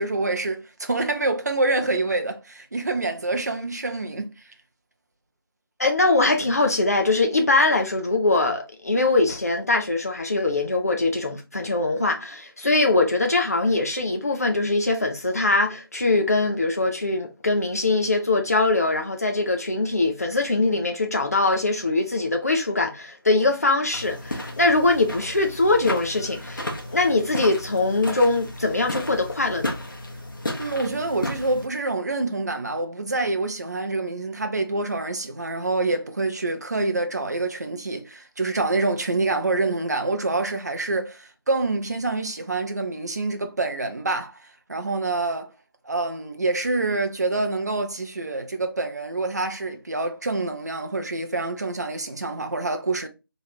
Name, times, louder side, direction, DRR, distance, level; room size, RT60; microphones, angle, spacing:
voice 1, 0.0-4.5 30.6-45.5 45.8-53.1, right 2 dB, 45° right, 0.5 m, -26 dB
voice 2, 5.8-29.7, left 2 dB, 40° left, 0.6 m, -22 dB
sound 1, 23.9-31.7, left 1 dB, 55° left, 1.0 m, -33 dB
3.0 x 2.4 x 4.1 m
figure-of-eight pair, 165°, 13 cm